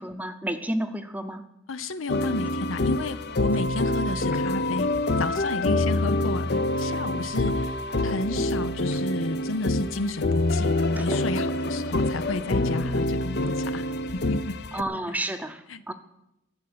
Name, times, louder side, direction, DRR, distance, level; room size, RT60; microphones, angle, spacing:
voice 1, 0.0-1.4 11.0-11.2 14.7-15.9, right 1 dB, 10° right, 9 dB, 0.8 m, -31 dB
voice 2, 1.7-4.9 5.2-13.8 14.1-14.6 15.7-15.9, left 2 dB, 85° left, 13 dB, 0.8 m, -32 dB
sound 1, 2.1-14.8, left 2 dB, 55° left, 0.7 m, -26 dB
12.5 x 7.7 x 9.6 m, 0.87 s
head